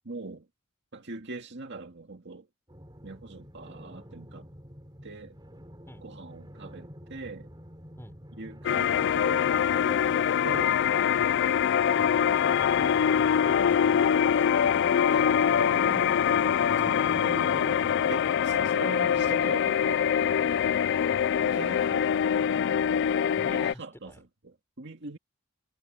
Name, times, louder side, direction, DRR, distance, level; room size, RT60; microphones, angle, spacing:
voice 1, 0.0-0.5 0.9-2.5 3.0-4.5 5.0-5.4 6.0-7.5 8.4-10.1 10.4-10.8 13.5-13.8 15.1-15.3 15.6-16.2 16.6-20.5 21.4-22.2 23.5-25.2, right 3 dB, 55° right, 2.0 m, -42 dB
sound 1, 2.7-19.5, equal, 20° right, 7.2 m, -48 dB
sound 2, 8.6-23.7, left 8 dB, 55° left, 0.3 m, -24 dB
voice 2, 11.2-15.2 16.6-17.4 19.3-19.6 23.4-24.2, equal, 10° left, 5.6 m, -49 dB
head